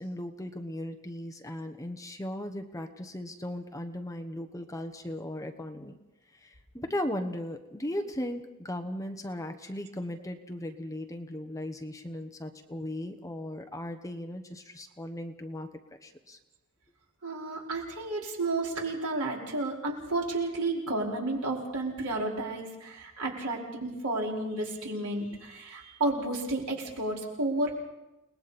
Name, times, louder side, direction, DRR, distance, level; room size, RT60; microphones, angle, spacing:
voice 1, 0.0-5.9 6.4-15.7 16.0-16.4, left 1 dB, 15° left, 5 dB, 1.3 m, -37 dB
voice 2, 17.2-27.8, right 2 dB, 80° right, -2 dB, 5.1 m, -32 dB
30.0 x 20.5 x 4.4 m, 0.98 s
head